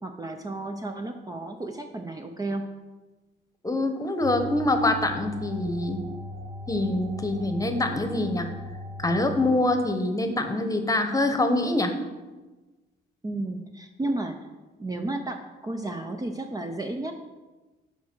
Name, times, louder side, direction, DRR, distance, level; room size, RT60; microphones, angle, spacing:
voice 1, 0.0-2.7 13.2-14.5 14.8-17.1, right 2 dB, 20° right, 4 dB, 0.6 m, -32 dB
voice 2, 3.6-6.0 6.7-8.5 9.0-11.9, left 2 dB, 15° left, 6 dB, 1.0 m, -25 dB
sound 1, 4.2-9.6, left 1 dB, 35° right, 1.2 m, -38 dB
7.1 x 4.8 x 6.0 m, 1.2 s
cardioid pair, 90°, 20 cm